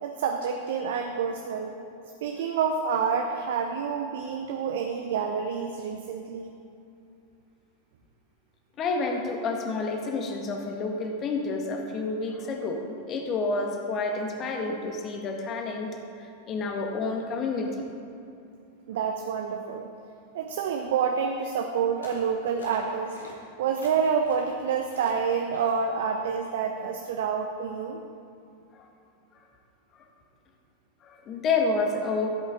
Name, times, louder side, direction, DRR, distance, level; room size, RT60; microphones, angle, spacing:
voice 1, 0.0-1.8 2.2-6.5 18.9-19.9 20.3-23.2 23.6-28.0, right 6 dB, 55° right, 4 dB, 0.7 m, -28 dB
voice 2, 8.8-17.8 28.7-28.9 31.0-32.3, left 3 dB, 30° left, 3 dB, 1.5 m, -29 dB
sound 1, 22.0-22.3 22.6-23.3 23.7-24.5 24.8-25.2 25.5-25.8, left 2 dB, 70° left, 2.0 m, -46 dB
15.0 x 8.2 x 3.8 m, 2.7 s
figure-of-eight pair, 90°, 0 cm